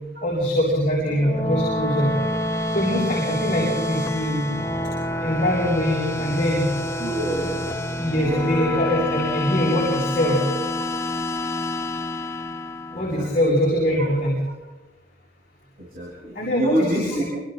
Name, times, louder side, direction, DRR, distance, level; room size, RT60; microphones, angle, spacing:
voice 1, 0.2-2.1 2.7-4.5 5.2-6.7 8.0-10.4 12.9-14.3 16.3-17.2, equal, 40° left, -5 dB, 7.8 m, -23 dB
sound 1, 1.1-13.4, left 1 dB, 15° left, 1.0 m, -27 dB
voice 2, 7.0-7.8 8.2-8.5 12.9-13.6 13.9-14.1 15.8-17.2, right 1 dB, 50° right, -5 dB, 7.6 m, -28 dB
29.0 x 28.5 x 4.2 m, 1.1 s
head